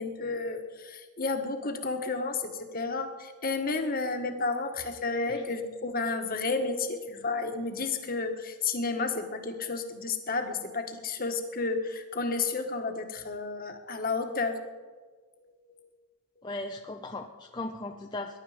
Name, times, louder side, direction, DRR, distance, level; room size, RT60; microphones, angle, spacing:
voice 1, 0.0-14.6 15.4-15.9, left 3 dB, 40° left, 5 dB, 1.6 m, -32 dB
voice 2, 16.4-18.4, left 2 dB, 20° left, 2 dB, 0.7 m, -37 dB
21.0 x 11.5 x 5.1 m, 1.4 s
head